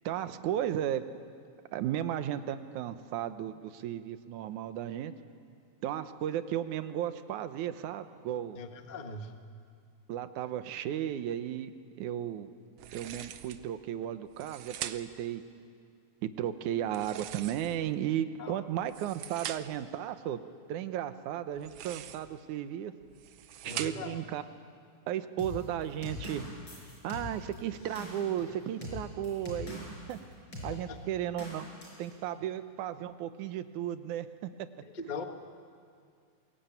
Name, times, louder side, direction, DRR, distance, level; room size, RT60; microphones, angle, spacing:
voice 1, 0.1-1.0 1.7-5.1 5.8-8.6 10.1-12.5 12.9-15.4 16.2-20.4 20.7-22.9 23.6-24.4 25.1-30.2 30.6-31.7 32.0-34.5, right 11 dB, 90° right, 11 dB, 2.4 m, -35 dB
voice 2, 8.5-9.3 18.4-18.6 23.6-24.2 30.7-31.0 34.9-35.2, left 3 dB, 75° left, 5 dB, 0.4 m, -40 dB
sound 1, 12.8-13.7 14.3-15.3 16.8-17.9 18.7-19.9 21.5-22.4 23.0-24.2, right 11 dB, 70° right, 1.6 m, -43 dB
sound 2, 25.4-30.2 30.5-30.7 31.4-32.1, left 2 dB, 40° left, 6.5 m, -42 dB
23.0 x 21.5 x 9.1 m, 2.2 s
omnidirectional pair, 3.4 m